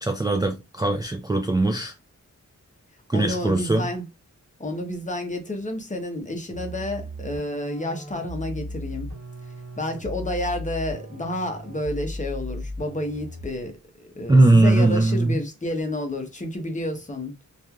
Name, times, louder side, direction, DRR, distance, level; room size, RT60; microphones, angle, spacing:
voice 1, 0.0-1.9 3.1-3.9 14.3-15.4, right 2 dB, 15° right, 0.3 m, -20 dB
voice 2, 3.1-4.0 4.6-9.1 9.8-17.5, left 1 dB, 25° left, 0.7 m, -30 dB
sound 1, 6.5-13.7, left 1 dB, 70° right, 0.9 m, -36 dB
3.0 x 2.4 x 2.3 m
wide cardioid pair, 100°, 30 cm